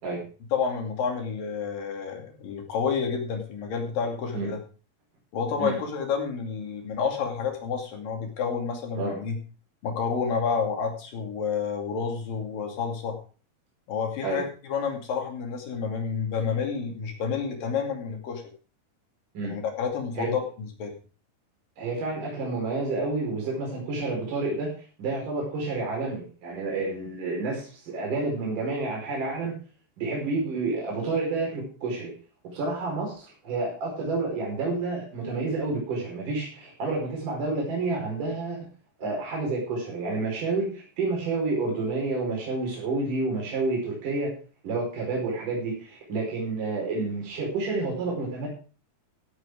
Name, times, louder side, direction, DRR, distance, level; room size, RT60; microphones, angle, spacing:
voice 1, 0.5-4.6 5.3-9.4 9.8-13.2 13.9-18.4 19.4-20.9, left 6 dB, 60° left, 3 dB, 4.1 m, -29 dB
voice 2, 21.8-24.7 25.0-29.5 30.0-32.1 32.5-38.6 39.0-44.3 44.6-48.5, right 3 dB, 55° right, -2 dB, 6.4 m, -29 dB
15.0 x 8.2 x 4.9 m, 0.38 s
omnidirectional pair, 4.6 m